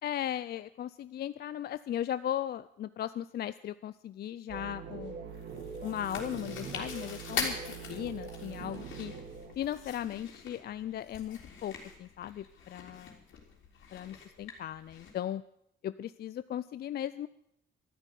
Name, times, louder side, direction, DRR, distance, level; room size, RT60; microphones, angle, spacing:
voice 1, 0.0-5.2 5.8-7.5 7.9-9.1 9.6-11.7 12.0-13.2 13.9-15.4 15.8-17.3, left 11 dB, 55° left, 15 dB, 0.4 m, -37 dB
sound 1, 4.5-9.6, right 5 dB, 65° right, 2.4 m, -43 dB
Chewing mastication, 5.3-15.1, left 5 dB, 75° left, 3.5 m, -43 dB
13.0 x 9.9 x 8.3 m, 0.78 s
cardioid pair, 90°, 20 cm